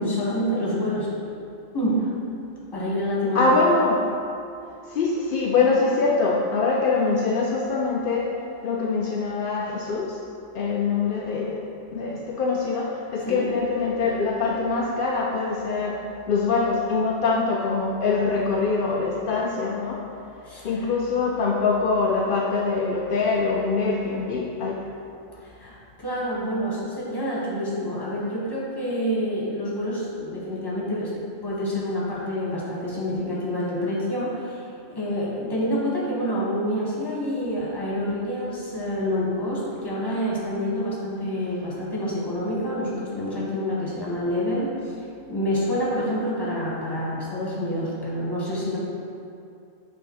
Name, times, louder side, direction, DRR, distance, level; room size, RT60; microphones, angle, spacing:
voice 1, 0.0-1.4 1.7-2.0 2.7-3.6 13.2-13.4 20.4-20.8 25.4-31.1 31.4-44.7 45.3-48.8, equal, 20° left, -6 dB, 1.4 m, -27 dB
voice 2, 3.3-4.0 4.9-8.3 8.6-10.2 10.5-16.0 16.3-20.0 20.6-24.9, left 4 dB, 65° left, -2 dB, 0.5 m, -24 dB
7.2 x 3.6 x 4.6 m, 2.5 s
omnidirectional pair, 1.4 m